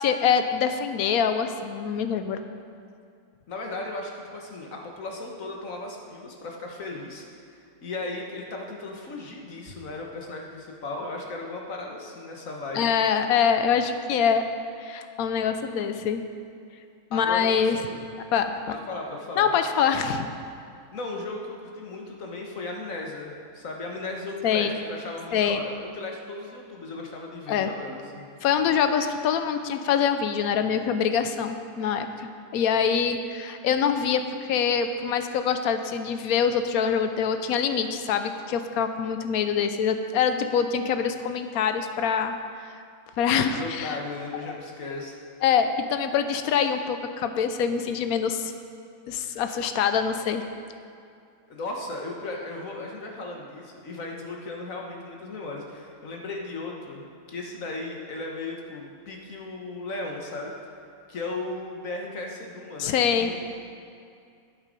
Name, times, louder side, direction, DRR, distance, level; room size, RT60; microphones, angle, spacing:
voice 1, 0.0-2.4 12.7-14.5 14.8-16.2 17.1-17.8 18.3-18.5 19.4-20.3 24.4-24.8 25.3-25.6 27.5-27.7 28.4-42.4 43.2-44.0 45.4-48.5 49.1-50.4 62.8-63.3, left 7 dB, 90° left, 8 dB, 1.1 m, -24 dB
voice 2, 3.5-7.2 7.8-12.9 17.1-18.0 18.7-19.5 20.9-28.2 43.5-45.2 51.5-60.5 61.1-63.4, left 2 dB, 70° left, 0 dB, 1.7 m, -36 dB
12.0 x 7.4 x 5.2 m, 2.4 s
omnidirectional pair, 1.5 m